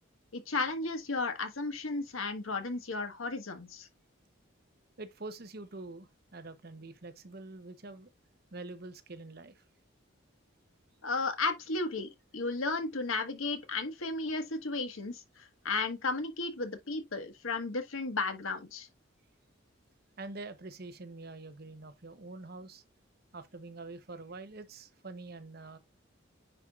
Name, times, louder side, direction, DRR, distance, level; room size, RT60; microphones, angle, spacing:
voice 1, 0.3-3.9 11.0-18.9, left 3 dB, 90° left, 1.5 m, -34 dB
voice 2, 5.0-8.1 8.5-9.6 20.2-22.8 23.3-25.8, right 2 dB, 50° right, 0.9 m, -45 dB
9.8 x 4.5 x 2.4 m
head